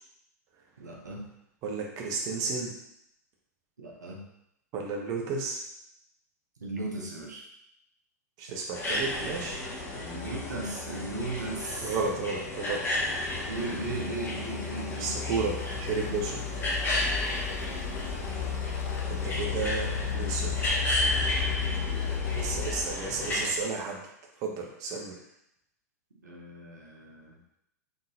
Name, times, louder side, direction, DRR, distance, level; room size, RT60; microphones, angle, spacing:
voice 1, 0.8-1.3 3.8-4.2 6.6-7.4 9.9-12.0 13.5-15.2 17.5-19.7 22.2-22.6 26.2-27.4, right 2 dB, 85° right, -2 dB, 0.9 m, -38 dB
voice 2, 1.6-2.7 4.7-5.6 8.4-9.6 11.8-12.8 15.0-16.5 19.1-20.7 22.3-24.0 24.4-25.2, right 4 dB, 40° right, 0 dB, 0.8 m, -32 dB
sound 1, 8.7-23.5, left 1 dB, 20° left, 1.3 m, -33 dB
sound 2, 9.2-23.6, left 7 dB, 55° left, 0.4 m, -35 dB
3.8 x 3.7 x 2.7 m, 0.78 s
hypercardioid pair, 100°, 9 cm